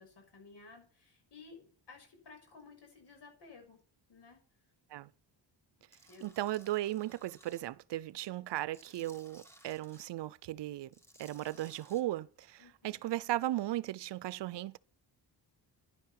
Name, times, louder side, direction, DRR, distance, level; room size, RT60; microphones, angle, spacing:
voice 1, 0.0-3.8 4.1-4.4 6.1-6.3 12.6-13.0, left 4 dB, 70° left, 6.4 m, -55 dB
Tools, 5.9-7.6 8.1-10.1 10.8-12.0, equal, 5° left, 1.9 m, -61 dB
voice 2, 6.2-10.9 11.2-14.8, right 15 dB, 75° right, 0.6 m, -36 dB
10.5 x 10.5 x 5.9 m
wide cardioid pair, 150°, 42 cm